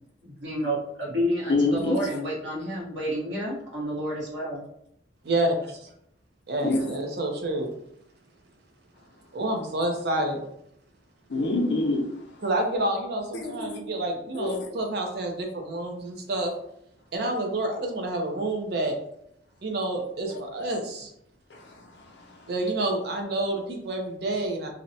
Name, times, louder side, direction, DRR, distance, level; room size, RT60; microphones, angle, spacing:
voice 1, 0.2-4.6, equal, 80° right, -5 dB, 1.0 m, -30 dB
voice 2, 1.5-2.2 6.6-7.0 11.3-12.2 13.4-13.8 14.3-14.7 20.3-20.4 21.5-22.5, left 2 dB, 65° left, 1 dB, 0.5 m, -27 dB
voice 3, 5.2-5.9 6.5-7.7 9.3-10.4 12.4-16.5 17.1-18.9 19.6-21.1 22.5-24.7, right 1 dB, 60° right, 3 dB, 0.5 m, -28 dB
2.6 x 2.1 x 2.6 m, 0.75 s
head